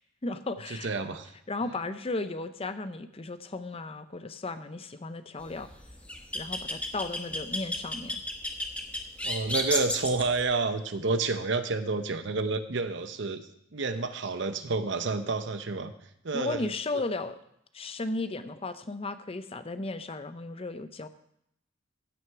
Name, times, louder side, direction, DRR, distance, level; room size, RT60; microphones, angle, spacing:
voice 1, 0.2-0.9 1.5-5.7 6.3-8.2 16.3-17.4 17.7-21.1, left 2 dB, 30° left, 11 dB, 0.6 m, -35 dB
voice 2, 0.8-1.3 9.2-15.9 16.2-16.7, right 3 dB, 60° right, 9 dB, 0.8 m, -29 dB
sound 1, 5.4-10.4, left 1 dB, 5° left, 1.0 m, -33 dB
15.0 x 6.4 x 4.7 m, 0.77 s
head